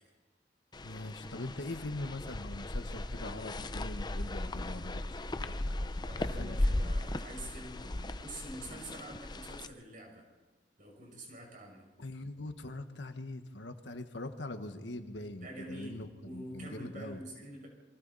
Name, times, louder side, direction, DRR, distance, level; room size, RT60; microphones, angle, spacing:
sound 1, 0.7-9.7, left 1 dB, 25° left, 0.7 m, -36 dB
voice 1, 0.8-6.6 6.8-7.0 12.0-17.2, left 2 dB, 85° left, 7 dB, 1.6 m, -42 dB
voice 2, 6.0-10.3 10.8-11.8 15.4-17.7, right 1 dB, 50° right, 0 dB, 6.3 m, -46 dB
27.0 x 24.0 x 4.2 m, 1.2 s
head